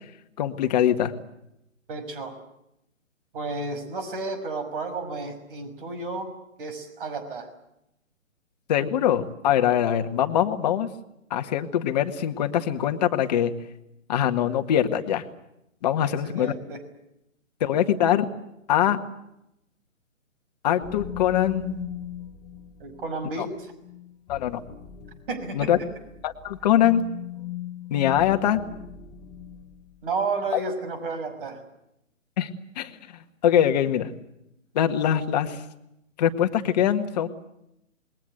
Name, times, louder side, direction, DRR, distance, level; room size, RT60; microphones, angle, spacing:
voice 1, 0.4-1.1 8.7-10.9 11.3-13.5 14.1-15.2 15.8-16.5 17.6-18.3 18.7-19.0 20.6-21.8 24.3-24.6 25.5-25.8 26.2-27.0 27.9-28.6 30.5-30.6 32.4-32.5 32.7-32.9 33.4-34.1 34.7-35.6 36.2-37.3, left 10 dB, 30° left, 7 dB, 1.9 m, -23 dB
voice 2, 1.9-2.3 3.3-6.3 6.6-7.5 16.0-16.8 22.8-23.5 25.3-25.7 30.0-31.6, right 3 dB, 40° right, 10 dB, 6.2 m, -32 dB
sound 1, 20.8-30.0, left 10 dB, 10° left, 1.1 m, -39 dB
27.5 x 21.5 x 7.9 m, 0.83 s
figure-of-eight pair, 145°, 40 cm